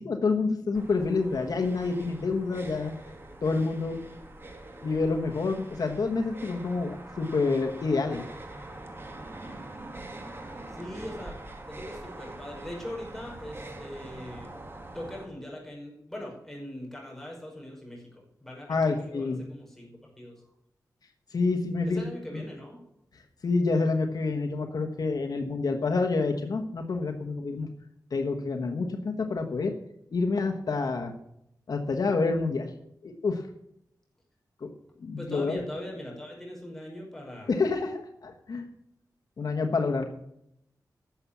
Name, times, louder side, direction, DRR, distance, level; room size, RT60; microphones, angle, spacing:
voice 1, 0.0-2.9 3.4-4.0 4.8-8.2 18.7-19.4 21.3-22.4 23.1-27.7 28.1-29.7 30.1-31.1 31.7-32.7 33.0-33.5 34.6-34.7 35.0-35.6 37.5-38.7 39.4-40.0, left 3 dB, 65° left, 4 dB, 1.1 m, -28 dB
sound 1, 0.7-15.3, right 2 dB, 35° right, 2.3 m, -44 dB
voice 2, 10.7-11.4 11.7-14.5 14.9-20.4 21.9-22.8 35.2-37.5, left 1 dB, 5° left, -3 dB, 5.3 m, -41 dB
11.5 x 7.2 x 8.4 m, 0.78 s
wide cardioid pair, 95°, 7 cm